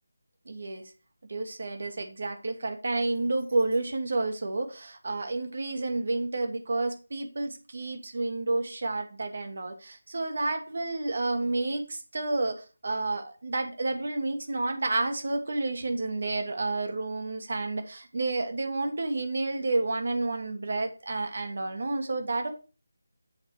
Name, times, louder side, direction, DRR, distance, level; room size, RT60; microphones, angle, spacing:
voice 1, 0.4-0.9 1.3-22.5, right 2 dB, 60° right, 5 dB, 1.4 m, -30 dB
7.9 x 4.0 x 4.7 m, 0.34 s
figure-of-eight pair, 160°, 0 cm